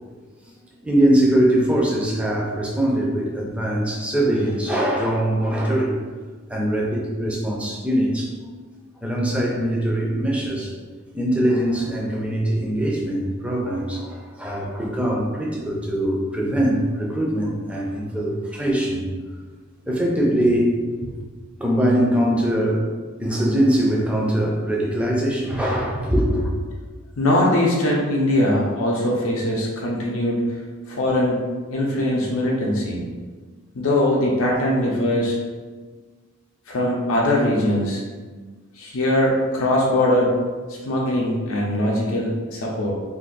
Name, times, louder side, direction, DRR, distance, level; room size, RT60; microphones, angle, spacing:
voice 1, 0.8-6.0 6.5-8.3 9.0-10.7 11.1-19.1 19.9-20.7 21.6-22.9 23.2-26.5, right 1 dB, 5° right, -3 dB, 0.4 m, -22 dB
voice 2, 27.2-30.4 30.9-31.4 31.7-33.0 33.7-35.4 36.7-38.0 38.8-40.3 40.7-42.9, left 1 dB, 80° left, -3 dB, 0.5 m, -21 dB
2.5 x 2.5 x 3.8 m, 1.4 s
head